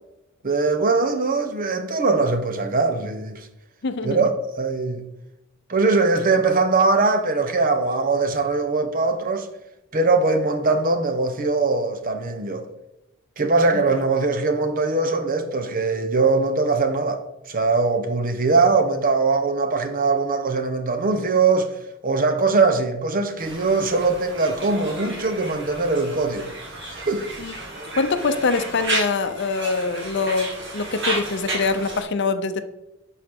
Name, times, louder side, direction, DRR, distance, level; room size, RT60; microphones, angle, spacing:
voice 1, 0.4-3.5 4.0-5.0 5.7-9.5 9.9-12.7 13.4-21.7 22.0-26.5 26.9-27.3, right 3 dB, 45° right, 0.8 m, -21 dB
voice 2, 3.8-4.3 13.7-13.9 27.4-27.5 28.0-32.6, left 4 dB, 55° left, 0.6 m, -24 dB
Conversation, 23.4-32.0, right 2 dB, 60° right, 2.0 m, -32 dB
11.5 x 4.6 x 3.6 m
head